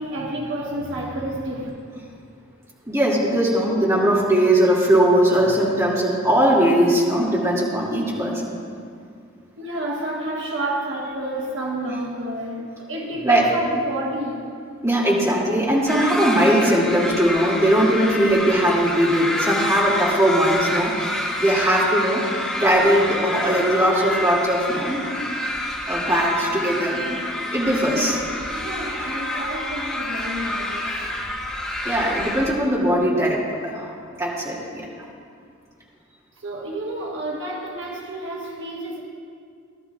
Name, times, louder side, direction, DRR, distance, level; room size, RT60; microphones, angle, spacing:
voice 1, 0.0-1.7 5.4-5.6 9.6-14.5 27.8-28.2 28.5-31.1 36.4-39.0, right 1 dB, 60° right, -2 dB, 1.3 m, -30 dB
voice 2, 2.9-8.5 13.2-13.4 14.8-21.1 21.4-22.2 22.6-25.1 25.9-27.2 27.5-28.2 31.8-33.9 34.2-34.9, right 1 dB, 15° right, -7 dB, 2.4 m, -20 dB
sound 1, 15.9-32.5, left 1 dB, 5° left, 1.2 m, -28 dB
18.5 x 11.5 x 2.4 m, 2.2 s
head